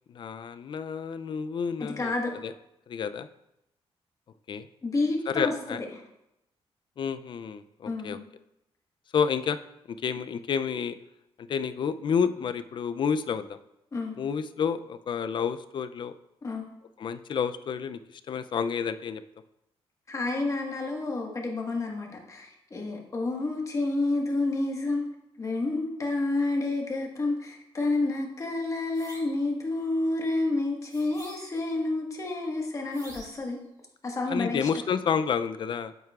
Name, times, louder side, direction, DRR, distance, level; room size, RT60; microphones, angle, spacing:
voice 1, 0.1-2.1 2.4-2.5 2.9-3.3 4.5-4.7 5.3-5.8 7.0-8.2 9.1-9.6 10.0-10.9 11.4-13.6 14.2-16.1 17.0-19.2 34.3-35.9, left 6 dB, 50° left, 12 dB, 0.4 m, -30 dB
voice 2, 1.8-2.3 4.8-5.5 7.9-8.2 13.9-14.2 16.4-16.7 20.1-25.1 25.4-33.6 34.0-34.8, left 2 dB, 30° left, 0 dB, 1.5 m, -29 dB
sound 1, 28.9-29.4 30.9-31.7 32.9-33.5, right 2 dB, 35° right, 2.9 m, -48 dB
9.0 x 8.0 x 2.4 m, 0.86 s
cardioid pair, 125°, 11 cm